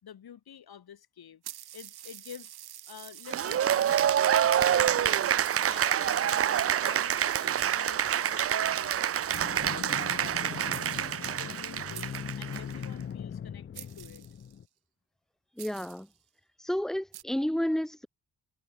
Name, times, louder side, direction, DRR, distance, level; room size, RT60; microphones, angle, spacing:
voice 1, 0.0-2.5 2.9-4.2 4.6-14.2, left 9 dB, 75° left, 4.7 m, -49 dB
sound 1, 1.4-4.4 5.1-5.2 5.4-6.2 7.1-8.1 9.1-9.2 9.3-10.4 10.7-11.2 11.9-12.8 13.7-14.6 15.6-16.2 17.1-17.2, right 12 dB, 85° right, 1.2 m, -48 dB
Cheering / Applause, 3.3-12.9, right 10 dB, 40° right, 0.4 m, -27 dB
sound 2, 9.3-14.6, left 8 dB, 35° left, 0.5 m, -40 dB
voice 2, 15.6-16.1 16.6-18.1, equal, ahead, 1.8 m, -30 dB
cardioid pair, 90°, 37 cm